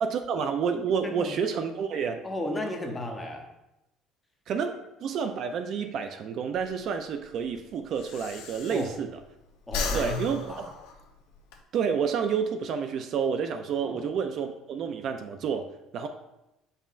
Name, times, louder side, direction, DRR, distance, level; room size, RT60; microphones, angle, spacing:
voice 1, 0.0-2.2 4.5-9.1 9.9-10.7 11.7-16.1, right 6 dB, 45° right, 6 dB, 0.3 m, -29 dB
voice 2, 1.0-1.4 2.2-3.4 8.7-8.9 9.7-10.6 13.8-14.0, left 1 dB, 10° left, 2 dB, 0.7 m, -34 dB
Breathing, 6.5-9.3 9.6-11.6, left 4 dB, 85° left, 0.7 m, -36 dB
7.1 x 5.5 x 2.4 m, 0.92 s
cardioid pair, 165°, 0 cm